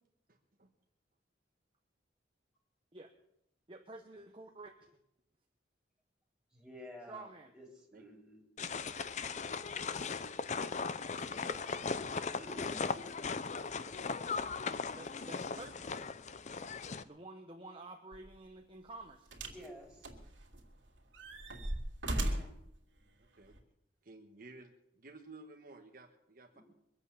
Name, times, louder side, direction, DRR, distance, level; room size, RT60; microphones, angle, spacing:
voice 1, 0.3-0.7 7.9-8.0 23.2-23.5 24.0-26.6, right 2 dB, 50° right, 3 dB, 1.4 m, -55 dB
voice 2, 3.7-5.0 7.1-7.5 14.9-15.9 17.0-19.3, right 2 dB, 30° right, 3 dB, 1.1 m, -50 dB
voice 3, 6.5-8.5 12.4-12.9 19.4-20.1 22.1-22.5 26.5-26.6, equal, 5° right, -2 dB, 4.4 m, -51 dB
sound 1, 8.6-17.0, left 5 dB, 40° left, 0.6 m, -38 dB
sound 2, 18.1-18.3 19.3-19.7 20.0-20.7 21.1-22.6 23.5-23.6, right 1 dB, 85° right, 2.9 m, -37 dB
23.5 x 8.3 x 7.1 m, 0.80 s
head